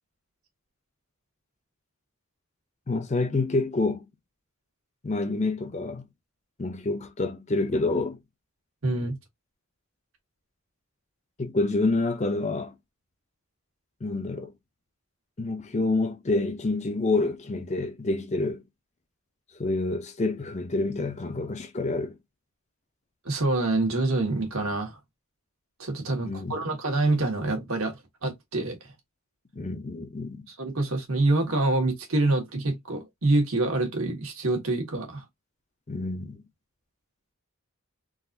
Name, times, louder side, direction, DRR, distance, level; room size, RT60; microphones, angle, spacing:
voice 1, 2.9-4.1 5.0-6.1 6.6-8.2 11.4-12.7 14.0-14.5 15.4-18.6 19.6-22.2 26.2-26.6 29.5-30.4 35.9-36.4, left 2 dB, 30° left, 0.5 m, -28 dB
voice 2, 8.8-9.1 23.2-25.0 25.8-28.8 30.5-35.2, right 2 dB, 75° right, 1.4 m, -26 dB
3.9 x 2.5 x 2.6 m
head